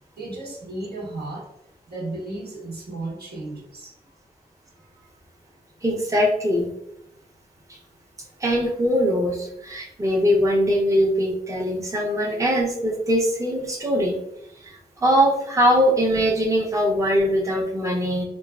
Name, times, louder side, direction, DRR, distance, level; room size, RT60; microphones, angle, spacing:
voice 1, 0.1-1.4 1.9-3.9 4.8-5.1, right 2 dB, 75° right, -5 dB, 1.0 m, -34 dB
voice 2, 5.8-6.7 7.7-7.8 8.4-14.2 14.6-18.3, equal, 20° right, -2 dB, 0.6 m, -21 dB
3.1 x 2.3 x 2.3 m, 0.80 s
cardioid pair, 45°, 17 cm